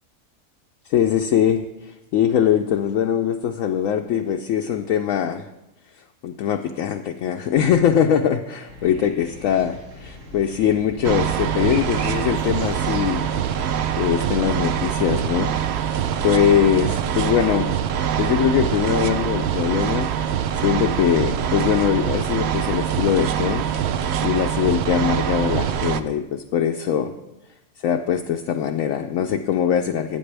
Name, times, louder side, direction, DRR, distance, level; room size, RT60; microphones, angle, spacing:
voice 1, 0.9-5.5 6.2-13.3 14.0-17.8 18.2-23.6 23.9-27.1 27.8-30.2, left 9 dB, 70° left, 4 dB, 0.9 m, -22 dB
sound 1, 8.6-14.9, equal, 90° right, 3.7 m, -40 dB
sound 2, 11.0-26.0, right 9 dB, 65° right, 0.6 m, -24 dB
14.0 x 8.7 x 3.3 m, 0.98 s
omnidirectional pair, 1.5 m